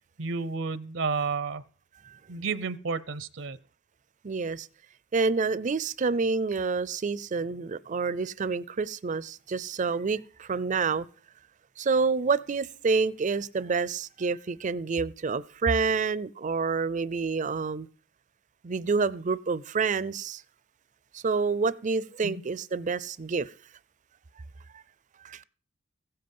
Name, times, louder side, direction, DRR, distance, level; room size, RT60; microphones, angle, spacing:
voice 1, 0.2-1.6 2.3-3.6 22.2-22.4, right 4 dB, 75° right, 0.7 m, -31 dB
voice 2, 4.2-4.7 5.1-11.1 11.8-17.9 18.6-20.4 21.1-23.5 24.7-24.8 25.2-25.4, right 4 dB, 40° right, 0.5 m, -28 dB
16.0 x 7.8 x 5.4 m
head